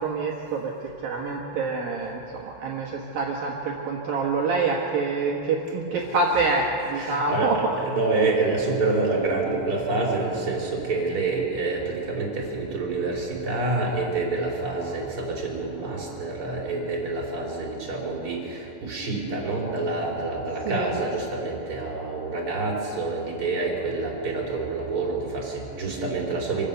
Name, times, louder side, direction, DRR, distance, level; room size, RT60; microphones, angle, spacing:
voice 1, 0.0-7.6 20.7-20.9, right 4 dB, 65° right, -2 dB, 2.6 m, -26 dB
voice 2, 5.9-6.5 6.8-26.7, right 3 dB, 30° right, -2 dB, 4.1 m, -27 dB
26.5 x 16.0 x 6.8 m, 2.9 s
omnidirectional pair, 5.8 m